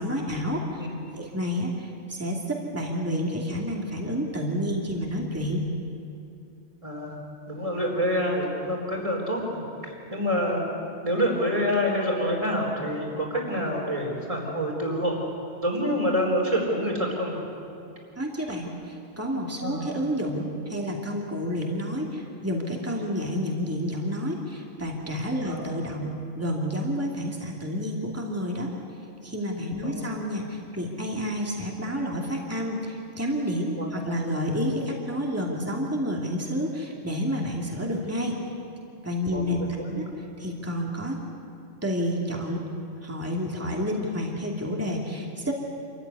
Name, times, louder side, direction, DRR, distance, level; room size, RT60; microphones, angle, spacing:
voice 1, 0.0-0.8 1.2-5.6 18.2-28.7 29.2-38.4 39.0-39.7 39.9-40.1 40.4-41.2 41.8-42.7 43.0-45.5, equal, 15° right, -1 dB, 2.6 m, -29 dB
voice 2, 0.8-1.3 6.8-7.2 7.5-10.6 11.0-15.2 15.6-17.4 19.6-19.9 25.4-25.6 29.8-30.0 33.8-33.9 39.3-40.0, equal, 30° right, 0 dB, 4.4 m, -27 dB
27.5 x 14.5 x 9.7 m, 2.6 s
omnidirectional pair, 1.1 m